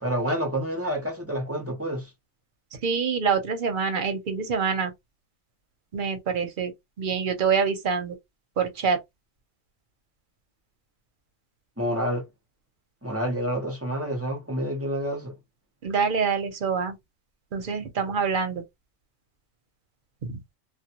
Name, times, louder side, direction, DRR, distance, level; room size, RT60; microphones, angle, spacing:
voice 1, 0.0-2.1 11.8-12.3 13.0-15.3, equal, 20° right, 0.4 m, -28 dB
voice 2, 2.8-4.9 5.9-6.7 7.0-8.1 8.6-9.0 15.8-17.0 17.5-18.6 20.3-20.4, right 6 dB, 50° right, 0.7 m, -25 dB
2.2 x 2.2 x 2.8 m
omnidirectional pair, 1.2 m